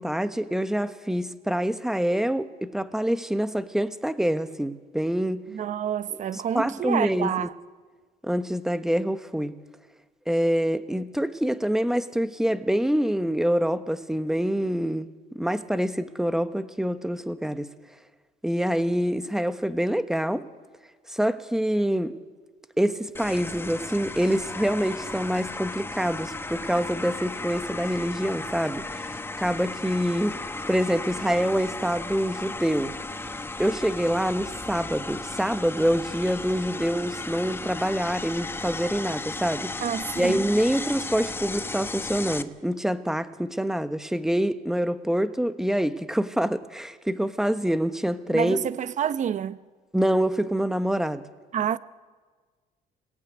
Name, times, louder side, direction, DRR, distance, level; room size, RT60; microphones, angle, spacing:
voice 1, 0.0-5.4 6.3-7.5 8.2-9.5 10.3-15.1 15.3-17.7 18.4-20.5 21.1-22.1 22.8-30.4 30.7-32.9 33.6-39.7 40.1-48.6 49.9-51.2, equal, 5° right, 1.1 m, -26 dB
voice 2, 5.5-7.5 39.8-40.4 48.3-49.6 51.5-51.8, right 9 dB, 45° right, 0.8 m, -28 dB
sound 1, 23.1-42.4, left 3 dB, 15° left, 1.0 m, -35 dB
27.5 x 19.0 x 9.3 m
cardioid pair, 110°, 17 cm